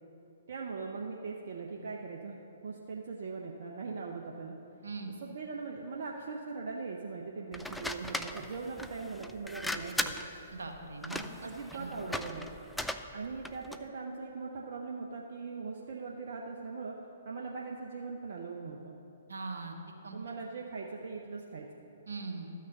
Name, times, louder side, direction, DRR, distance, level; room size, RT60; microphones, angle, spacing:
voice 1, 0.5-2.4 2.6-4.6 5.2-10.2 11.4-12.5 13.1-17.0 17.2-18.9 20.1-21.7, right 4 dB, 60° right, -1 dB, 0.8 m, -40 dB
sound 1, 7.5-13.9, left 1 dB, 5° left, 0.4 m, -38 dB
voice 2, 10.5-11.3 11.7-11.9 19.3-19.8 20.0-20.2 22.1-22.5, right 4 dB, 75° right, 3 dB, 1.3 m, -40 dB
13.0 x 6.4 x 5.3 m, 2.9 s
figure-of-eight pair, 125°, 0 cm